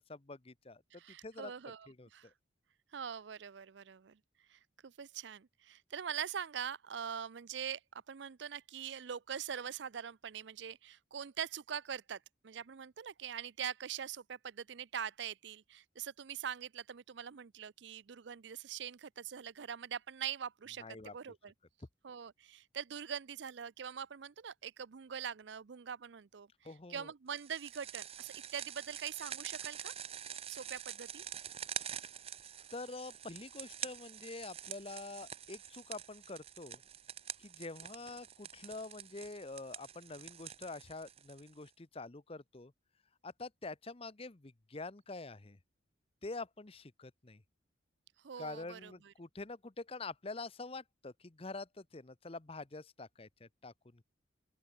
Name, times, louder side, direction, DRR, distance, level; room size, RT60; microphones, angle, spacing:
voice 1, 0.0-0.8 1.2-1.5 1.9-2.1 20.8-21.1 26.6-27.1 32.7-36.8 37.4-42.7 43.2-45.6 46.2-47.4 48.4-54.0, left 3 dB, 30° left, 0.8 m, -46 dB
voice 2, 0.9-2.3 2.9-4.2 4.5-21.5 22.0-29.9 30.5-31.3 48.2-49.1, right 8 dB, 60° right, 0.5 m, -43 dB
sound 1, 27.4-41.7, right 9 dB, 30° right, 0.9 m, -46 dB
open air
head